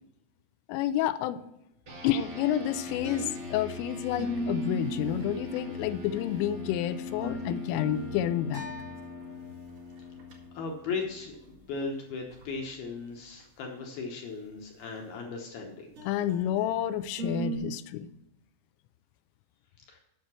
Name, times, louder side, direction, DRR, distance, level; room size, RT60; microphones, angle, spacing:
voice 1, 0.7-1.4 2.0-8.7 16.1-18.1, left 11 dB, 90° left, 12 dB, 3.2 m, -29 dB
sound 1, 1.9-11.6, left 4 dB, 90° right, 0.9 m, -41 dB
sound 2, 2.9-3.8 4.2-6.4 7.0-9.4 9.7-9.8 10.2-10.3 11.8-11.9 12.3-12.4 16.0-16.7 17.2-17.6, right 2 dB, 70° right, 1.2 m, -38 dB
voice 2, 10.5-15.9 19.9-20.0, left 4 dB, 75° left, 2 dB, 2.3 m, -37 dB
9.4 x 6.5 x 6.0 m, 0.88 s
omnidirectional pair, 5.7 m